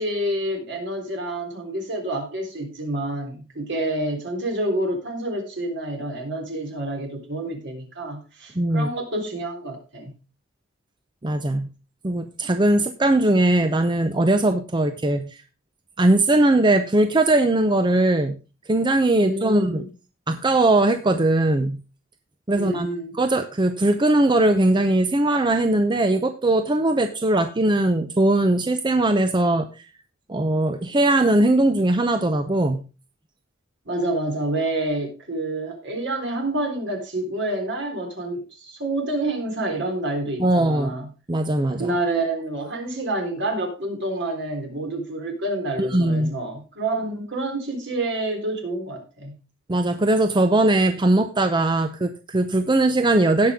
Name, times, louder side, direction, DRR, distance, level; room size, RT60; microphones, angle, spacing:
voice 1, 0.0-10.1 19.2-19.9 22.5-23.1 33.9-41.1 41.8-49.3, right 1 dB, 60° right, 2 dB, 3.7 m, -28 dB
voice 2, 8.6-8.9 11.2-11.7 12.0-15.4 16.0-18.4 18.7-19.8 20.3-21.8 22.5-22.9 23.1-29.7 30.3-32.8 40.4-40.9 41.3-41.9 45.8-46.3 49.7-53.5, right 2 dB, 25° right, 8 dB, 0.6 m, -20 dB
17.0 x 5.9 x 3.6 m, 0.32 s
head